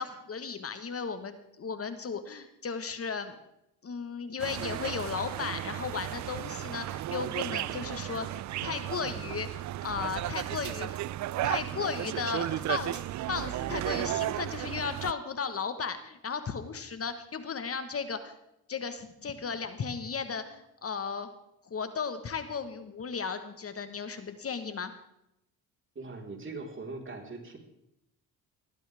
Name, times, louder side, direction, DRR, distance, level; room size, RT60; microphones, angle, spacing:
voice 1, 0.0-3.4 3.8-8.3 8.6-9.5 9.8-11.0 11.4-18.3 18.7-21.3 21.6-24.9, left 5 dB, 40° left, 9 dB, 1.4 m, -35 dB
sound 1, 4.4-15.1, right 14 dB, 55° right, 0.4 m, -34 dB
voice 2, 25.9-27.6, right 3 dB, 35° right, 1 dB, 4.2 m, -41 dB
18.5 x 15.0 x 3.5 m, 0.83 s
cardioid pair, 90°, 35 cm